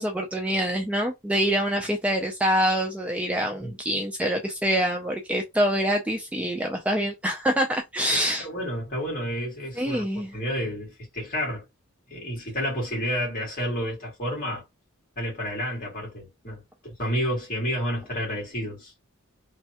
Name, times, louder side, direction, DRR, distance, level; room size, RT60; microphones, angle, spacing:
voice 1, 0.0-8.5 9.8-10.3, equal, 5° right, 0.3 m, -25 dB
voice 2, 8.1-10.1 10.3-11.6 12.1-14.6 15.2-18.9, equal, 40° left, 1.9 m, -30 dB
3.1 x 2.2 x 2.8 m
head